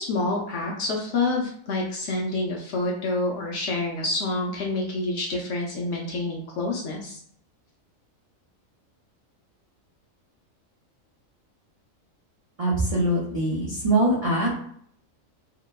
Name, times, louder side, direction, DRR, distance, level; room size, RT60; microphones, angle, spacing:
voice 1, 0.0-7.2, left 2 dB, 65° left, -1 dB, 0.7 m, -28 dB
voice 2, 12.6-14.5, right 1 dB, 55° right, -6 dB, 0.3 m, -23 dB
2.8 x 2.1 x 2.2 m, 0.64 s
omnidirectional pair, 1.4 m